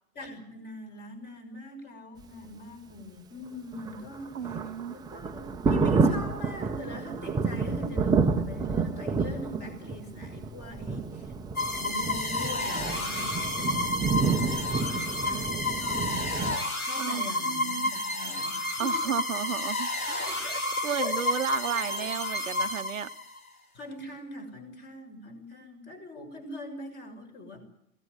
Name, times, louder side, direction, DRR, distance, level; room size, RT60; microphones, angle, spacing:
voice 1, 0.1-4.6 4.9-11.3 11.8-19.2 20.2-20.6 21.0-21.4 21.7-22.0 23.7-27.6, left 1 dB, 25° left, 6 dB, 6.4 m, -42 dB
Thunder, 3.7-16.6, right 4 dB, 10° right, 1.2 m, -29 dB
voice 2, 4.3-4.9 17.0-17.9 18.8-20.4 20.8-23.1, right 8 dB, 65° right, 10 dB, 1.1 m, -33 dB
sound 1, 11.5-23.4, left 2 dB, 80° left, 3.9 m, -31 dB
22.5 x 17.5 x 9.6 m, 0.78 s
figure-of-eight pair, 110°, 43 cm